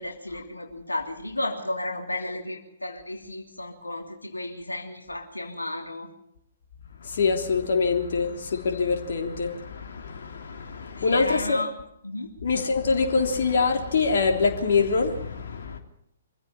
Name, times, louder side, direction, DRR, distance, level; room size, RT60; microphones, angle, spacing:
voice 1, 0.0-6.1 11.0-11.7 12.0-12.3, left 1 dB, 80° left, 2.9 m, -33 dB
voice 2, 7.0-11.6 12.4-15.8, left 4 dB, 55° left, 3.4 m, -25 dB
25.0 x 16.0 x 7.1 m
figure-of-eight pair, 120°, 0 cm